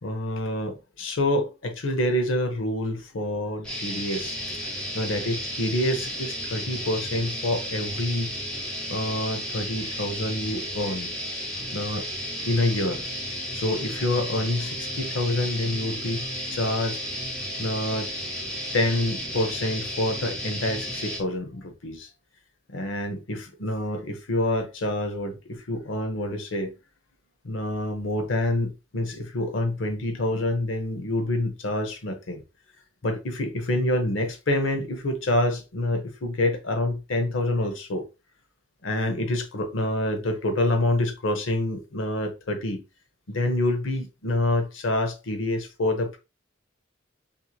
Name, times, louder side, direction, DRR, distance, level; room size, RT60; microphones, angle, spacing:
voice 1, 0.0-4.4 4.9-8.3 8.9-11.1 11.7-12.0 12.5-13.0 13.5-16.2 16.5-17.0 17.6-18.1 18.7-22.1 22.7-26.7 27.4-32.4 33.0-38.0 38.8-42.8 43.3-46.2, left 1 dB, 80° left, 0.7 m, -27 dB
sound 1, 3.6-21.2, equal, 5° left, 0.8 m, -33 dB
2.9 x 2.6 x 2.3 m
head